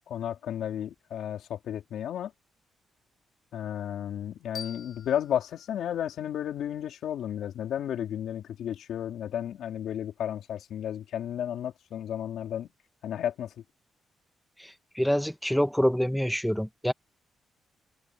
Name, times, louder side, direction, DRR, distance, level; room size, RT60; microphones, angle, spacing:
voice 1, 0.0-2.3 3.5-12.7 13.0-13.5, left 10 dB, 75° left, 3.6 m, -33 dB
sound 1, 4.5-7.3, left 6 dB, 40° left, 2.4 m, -47 dB
voice 2, 14.6-16.9, equal, ahead, 1.2 m, -26 dB
cardioid pair, 135°, 0 cm